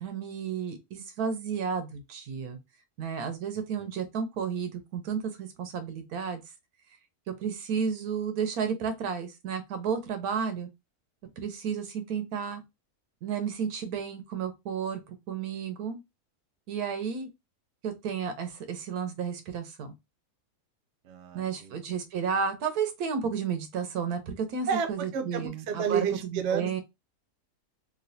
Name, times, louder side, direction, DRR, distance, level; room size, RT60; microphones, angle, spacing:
voice 1, 0.0-2.6 3.0-6.4 7.4-10.7 11.4-12.6 13.2-16.0 16.7-17.3 17.8-19.9 21.3-26.8, right 6 dB, 85° right, 1.2 m, -32 dB
voice 2, 21.0-21.8 24.7-26.8, right 7 dB, 60° right, 0.8 m, -31 dB
3.1 x 2.6 x 2.6 m
omnidirectional pair, 1.5 m